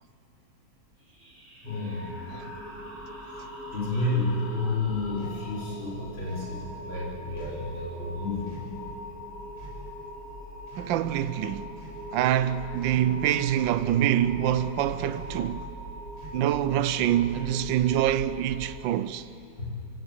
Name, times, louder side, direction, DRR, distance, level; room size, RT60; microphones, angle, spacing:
sound 1, 1.0-8.2, equal, 40° right, 4.7 m, -50 dB
voice 1, 1.6-2.1 3.3-3.4 3.7-8.6 19.6-19.7, left 2 dB, 85° left, 6.1 m, -31 dB
sound 2, 1.7-18.8, equal, 50° left, 3.0 m, -41 dB
sound 3, 5.2-5.4 6.3-6.5 7.4-7.7 8.5-8.7 9.6-9.8 10.6-11.2 11.7-12.0 12.8-13.1 14.0-14.4 15.1-15.5 16.2-16.5 17.3-17.7, right 2 dB, 10° right, 7.0 m, -48 dB
voice 2, 10.8-11.7 12.1-15.7 16.3-19.3, right 11 dB, 80° right, 1.4 m, -25 dB
25.0 x 17.0 x 8.6 m
omnidirectional pair, 2.1 m